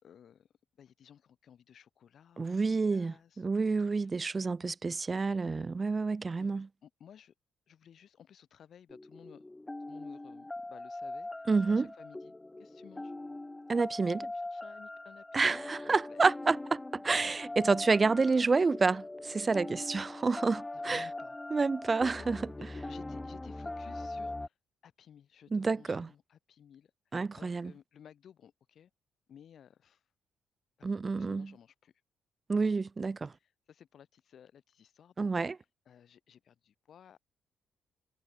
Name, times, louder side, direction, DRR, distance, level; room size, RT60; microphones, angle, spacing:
voice 1, 0.0-0.5 0.8-4.5 6.4-7.3 7.7-9.4 9.9-13.1 14.1-16.2 19.7-19.9 20.7-21.4 22.1-22.3 22.6-24.5 24.8-26.9 27.4-28.9 29.3-30.0 30.8-31.9 32.5-32.7 33.3-35.5 35.9-37.2, left 8 dB, 55° left, 6.1 m, -57 dB
voice 2, 2.4-6.7 11.5-11.9 13.7-14.3 15.3-16.6 16.9-21.0 21.5-22.4 25.5-26.1 27.1-27.7 30.8-31.5 32.5-33.3 35.2-35.6, right 4 dB, 35° right, 0.5 m, -29 dB
sound 1, 8.9-24.5, left 2 dB, 15° left, 0.4 m, -41 dB
figure-of-eight pair, 40°, 0 cm